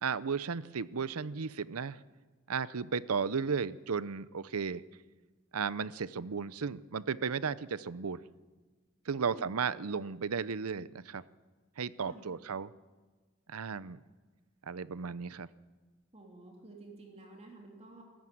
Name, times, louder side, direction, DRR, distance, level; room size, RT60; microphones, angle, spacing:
voice 1, 0.0-2.0 2.5-4.8 5.5-8.2 9.1-11.2 11.8-12.7 13.5-14.0 14.7-15.5, right 5 dB, 90° right, 17 dB, 0.7 m, -34 dB
voice 2, 9.1-9.5 12.0-12.4 16.1-18.0, right 2 dB, 30° right, 1 dB, 3.2 m, -51 dB
22.0 x 13.5 x 9.3 m, 1.3 s
head